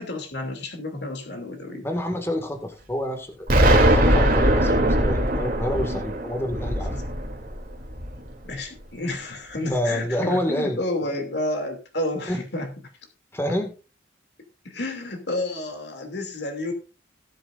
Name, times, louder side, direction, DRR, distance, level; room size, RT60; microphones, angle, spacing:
voice 1, 0.0-1.9 6.9-7.0 8.4-12.7 14.6-16.7, left 1 dB, 65° left, 4 dB, 2.7 m, -30 dB
voice 2, 1.8-3.5 3.9-7.0 9.7-11.2 12.3-12.4 13.3-13.7, left 1 dB, 15° left, 4 dB, 1.9 m, -28 dB
Explosion, 3.5-8.3, right 1 dB, 50° right, 2.9 m, -20 dB
18.5 x 7.8 x 2.5 m, 0.33 s
head